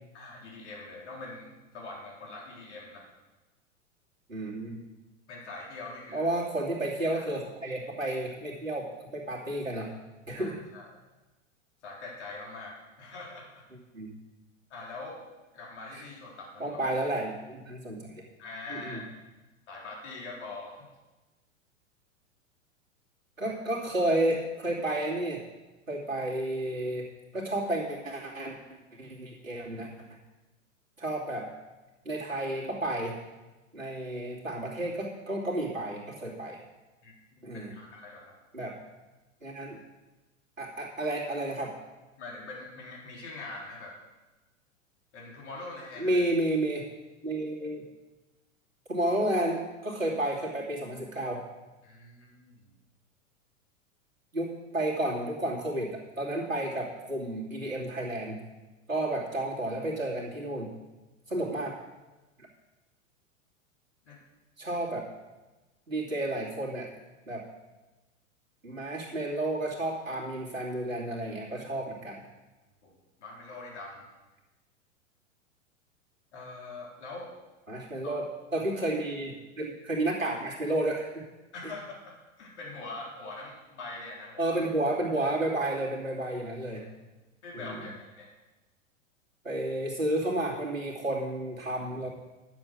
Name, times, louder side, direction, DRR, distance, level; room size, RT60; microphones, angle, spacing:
voice 1, 0.1-3.0 5.3-6.3 7.1-7.2 10.4-11.0 11.8-13.6 14.7-15.2 15.5-16.8 18.4-19.0 19.7-20.9 23.4-23.5 37.0-38.3 42.2-44.0 45.1-46.2 51.8-52.7 61.3-61.5 64.0-64.2 72.8-74.1 76.3-77.3 78.0-78.2 81.5-84.6 86.7-86.8 87.4-87.9 88.2-88.3, left 3 dB, 60° left, -3 dB, 3.9 m, -43 dB
voice 2, 4.3-4.8 6.1-9.9 10.3-10.6 13.9-14.1 15.9-16.0 16.6-18.2 18.7-19.0 23.4-25.4 25.9-27.1 27.3-28.6 29.0-29.9 31.0-31.5 32.0-33.2 33.7-36.6 37.4-37.7 38.5-38.7 39.4-39.8 40.6-41.7 46.0-46.9 47.2-47.9 48.9-51.4 54.3-58.4 58.9-60.7 61.3-61.8 64.6-65.0 65.9-66.9 67.3-67.4 68.6-72.2 77.7-81.2 81.6-81.7 84.4-86.8 87.5-87.8 89.4-92.1, right 1 dB, 85° right, -5 dB, 2.8 m, -31 dB
11.0 x 7.6 x 6.2 m, 1.1 s
figure-of-eight pair, 95°, 39 cm